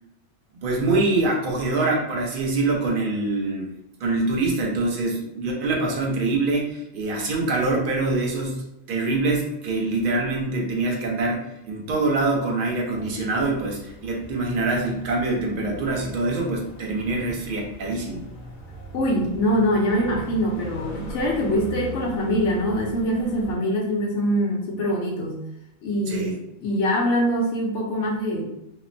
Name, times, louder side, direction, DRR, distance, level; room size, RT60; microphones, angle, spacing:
voice 1, 0.6-3.7 4.0-18.2 26.1-26.3, right 2 dB, 55° right, -1 dB, 0.6 m, -24 dB
sound 1, 12.9-23.6, left 1 dB, 90° left, 1.0 m, -39 dB
voice 2, 18.9-25.4 25.8-26.3 26.6-28.5, equal, 70° left, -1 dB, 0.9 m, -23 dB
2.8 x 2.0 x 2.5 m, 0.86 s
omnidirectional pair, 1.4 m